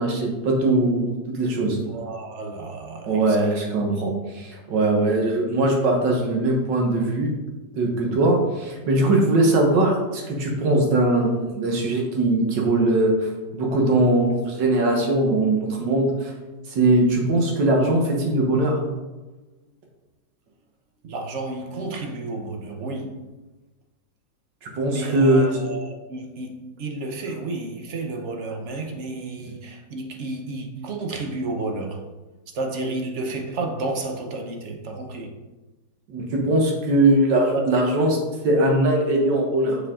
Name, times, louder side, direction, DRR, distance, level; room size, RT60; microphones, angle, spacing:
voice 1, 0.0-1.8 3.1-7.3 7.7-13.1 13.5-16.3 16.7-18.8 24.6-25.5 36.1-38.2 38.4-39.8, right 2 dB, 75° right, 1.8 m, -20 dB
voice 2, 1.8-3.7 21.0-23.2 24.9-32.0 32.5-35.3 37.5-37.6, right 2 dB, 55° right, 0.8 m, -31 dB
6.5 x 4.6 x 3.7 m
omnidirectional pair, 1.9 m